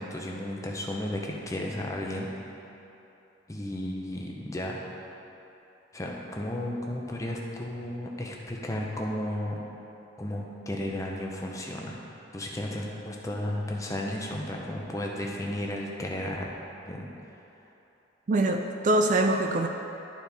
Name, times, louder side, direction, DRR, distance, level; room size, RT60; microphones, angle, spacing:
voice 1, 0.0-2.3 3.5-4.8 5.9-9.6 10.2-12.0 12.3-16.5 16.8-17.1, left 1 dB, 15° left, -1 dB, 0.7 m, -33 dB
voice 2, 18.3-19.7, right 2 dB, 40° right, 4 dB, 0.3 m, -24 dB
11.0 x 4.3 x 3.4 m, 3.0 s
head